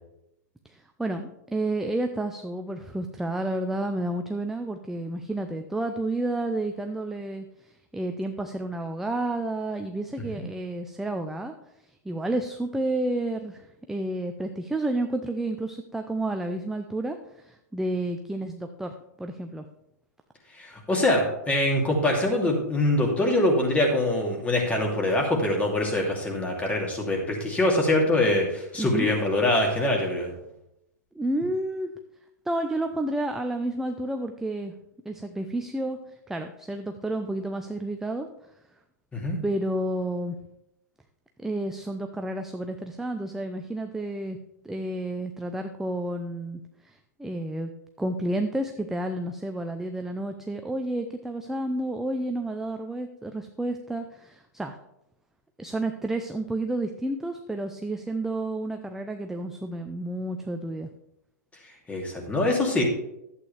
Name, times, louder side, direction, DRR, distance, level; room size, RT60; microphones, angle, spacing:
voice 1, 0.6-11.5 12.0-19.6 28.8-29.1 31.1-31.9 32.5-34.7 35.1-38.3 39.4-40.4 41.4-44.4 44.6-47.7 48.0-54.8 55.6-60.9, right 1 dB, 5° right, 5 dB, 0.5 m, -30 dB
voice 2, 20.6-30.3 39.1-39.4 61.9-62.8, left 1 dB, 15° left, -1 dB, 2.7 m, -24 dB
11.5 x 8.3 x 3.4 m, 0.84 s
hypercardioid pair, 115°, 10 cm